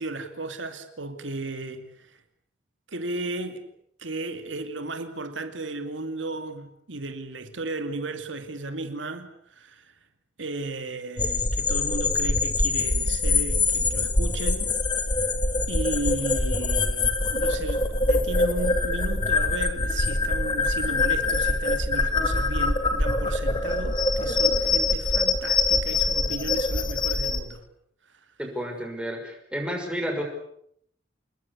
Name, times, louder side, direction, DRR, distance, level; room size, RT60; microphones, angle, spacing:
voice 1, 0.0-2.2 2.9-3.6 4.0-9.9 10.4-14.8 15.7-27.6, right 2 dB, 85° right, 2.5 m, -35 dB
sound 1, 11.2-27.4, left 3 dB, 25° left, 1.9 m, -24 dB
voice 2, 28.4-30.2, equal, 5° right, 6.0 m, -31 dB
28.5 x 20.5 x 8.4 m
head